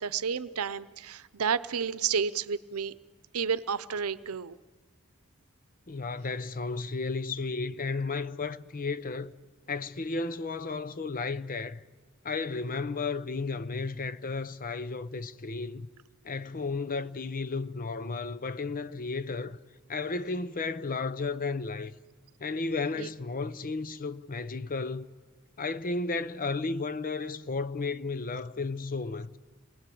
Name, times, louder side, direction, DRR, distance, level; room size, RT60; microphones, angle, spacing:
voice 1, 0.0-2.9 3.3-4.6 22.9-23.1, right 6 dB, 90° right, 0.8 m, -31 dB
voice 2, 5.9-9.3 9.7-11.8 12.2-15.9 16.2-19.6 19.9-21.9 22.4-25.1 25.6-29.4, left 3 dB, 40° left, 0.7 m, -33 dB
28.0 x 20.5 x 8.6 m
head